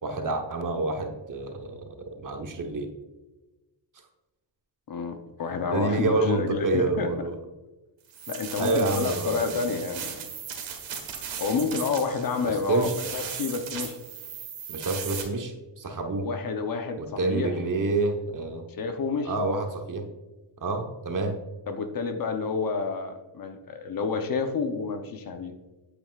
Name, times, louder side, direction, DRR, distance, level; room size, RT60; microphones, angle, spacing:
voice 1, 0.0-2.9 5.7-7.3 8.6-9.7 12.4-12.9 14.7-16.3 17.0-18.6 19.2-20.1 20.6-21.4, right 2 dB, 45° right, 4 dB, 1.2 m, -28 dB
voice 2, 4.9-7.1 8.3-10.1 11.4-14.0 16.2-17.5 18.8-19.3 21.7-25.5, left 4 dB, 50° left, 7 dB, 0.9 m, -29 dB
sound 1, 8.1-15.2, right 7 dB, 85° right, 1.6 m, -37 dB
8.9 x 8.3 x 2.4 m, 1.1 s
cardioid pair, 115°, 45 cm